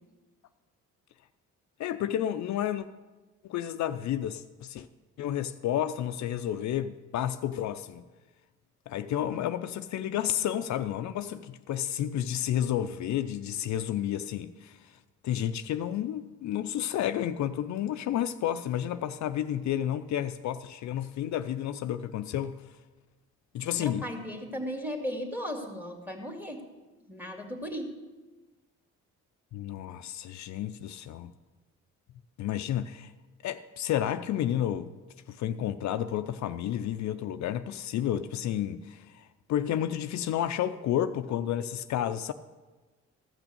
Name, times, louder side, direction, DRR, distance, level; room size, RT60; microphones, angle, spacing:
voice 1, 1.8-2.9 3.4-4.9 5.2-8.0 8.9-22.6 23.5-24.1 29.5-31.3 32.4-33.1 33.4-34.9 35.3-42.3, left 11 dB, 65° left, 0.5 m, -31 dB
voice 2, 23.8-26.6 27.1-28.0, equal, 5° right, 2.0 m, -36 dB
14.0 x 6.1 x 6.7 m
cardioid pair, 90°, 30 cm